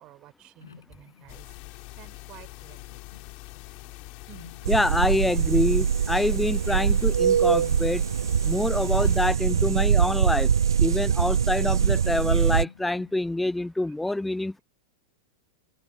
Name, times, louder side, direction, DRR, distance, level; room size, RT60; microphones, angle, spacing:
voice 1, 0.0-1.5 1.9-3.3 4.2-4.5 13.6-13.7 14.1-14.2, right 17 dB, 40° right, 6.3 m, -52 dB
sound 1, 0.6-13.7, left 6 dB, 90° left, 8.0 m, -53 dB
sound 2, 1.3-9.3, left 27 dB, 50° left, 7.2 m, -44 dB
sound 3, 4.6-12.6, right 7 dB, 85° right, 0.4 m, -23 dB
voice 2, 4.7-8.0 8.4-10.5 10.8-14.6, left 2 dB, 5° left, 0.5 m, -26 dB
hypercardioid pair, 105°, 2 cm